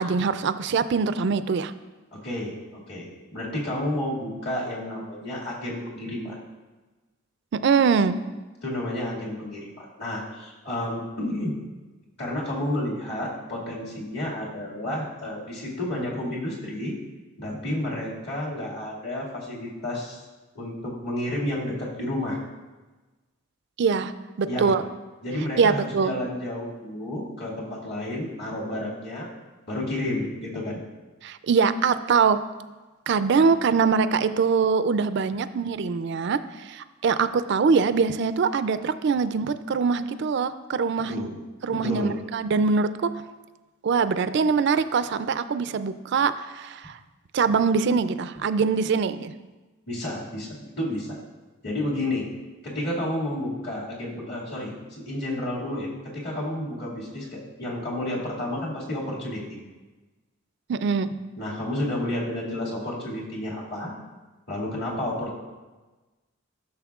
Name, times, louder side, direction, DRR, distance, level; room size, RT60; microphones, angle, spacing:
voice 1, 0.0-1.7 7.6-8.2 23.8-24.1 24.4-24.8 25.6-26.1 31.2-32.4 33.1-41.3 41.6-43.1 43.8-47.0 47.3-49.3 60.7-61.1, right 5 dB, 55° right, 13 dB, 0.3 m, -23 dB
voice 2, 2.1-2.5 2.9-6.4 8.6-11.6 12.2-16.9 17.4-20.2 20.5-22.4 24.5-24.7 25.2-29.3 29.7-30.8 41.1-41.4 41.7-42.2 49.9-51.2 51.6-52.3 52.6-59.4 61.4-63.9 64.5-65.3, left 1 dB, 50° left, -5 dB, 2.1 m, -31 dB
12.5 x 6.6 x 2.4 m, 1.2 s
head